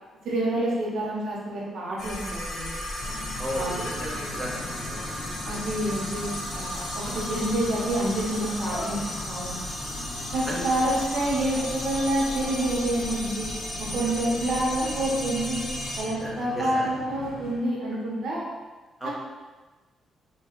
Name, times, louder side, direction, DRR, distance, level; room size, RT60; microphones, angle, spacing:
voice 1, 0.2-2.7 3.5-3.9 5.5-9.6 10.3-13.5 13.8-15.6 16.0-18.4 19.0-19.1, right 1 dB, 75° right, -4 dB, 0.7 m, -28 dB
sound 1, 2.0-16.0, left 1 dB, 50° left, 1.2 m, -34 dB
sound 2, 3.0-17.6, left 2 dB, 80° left, 0.7 m, -40 dB
voice 2, 3.4-5.1 10.5-10.7 16.2-16.9 19.0-19.1, equal, 5° right, -6 dB, 0.7 m, -34 dB
3.1 x 2.2 x 3.0 m, 1.2 s
cardioid pair, 115°, 0 cm